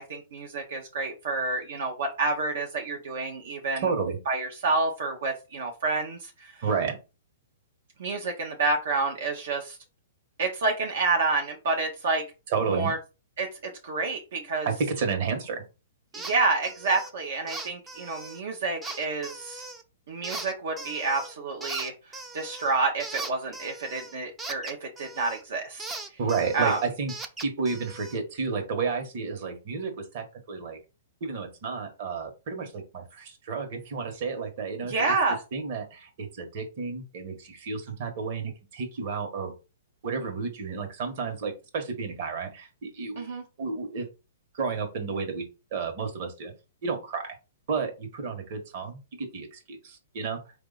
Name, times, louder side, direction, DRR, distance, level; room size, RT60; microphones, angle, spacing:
voice 1, 0.0-3.8 4.3-6.6 8.0-9.8 10.4-12.3 12.8-13.0 13.4-14.7 16.1-19.6 20.1-21.9 22.3-25.8 26.5-26.8 34.9-35.4 43.2-43.4, right 3 dB, 70° right, 2 dB, 1.0 m, -28 dB
voice 2, 3.8-4.2 6.6-7.0 12.5-12.9 14.6-15.6 26.2-27.1 27.4-30.8 31.2-35.1 35.5-39.5 40.0-43.3 43.6-44.1 44.5-46.5 46.8-47.4 47.7-50.4, right 5 dB, 45° right, 4 dB, 1.4 m, -31 dB
sound 1, 16.1-16.4 16.6-17.1 17.5-18.4 18.8-19.8 20.2-21.3 21.6-25.4 25.8-28.2, right 2 dB, 10° right, 0.5 m, -39 dB
4.7 x 2.8 x 4.0 m, 0.29 s
hypercardioid pair, 150°, 0 cm